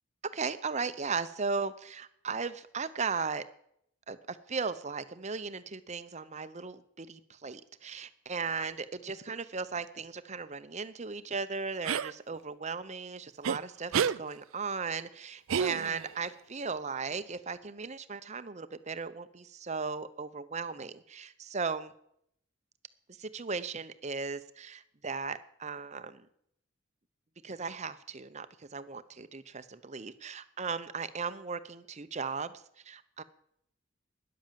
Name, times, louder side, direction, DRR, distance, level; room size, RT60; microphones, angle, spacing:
voice 1, 0.2-3.4 4.1-21.9 23.1-26.3 27.4-33.2, right 5 dB, 35° right, 12 dB, 0.7 m, -37 dB
sound 1, 11.9-12.1 13.4-13.6 13.9-14.2 15.5-16.2, right 7 dB, 75° right, 0.4 m, -29 dB
13.0 x 10.5 x 7.5 m, 0.72 s
head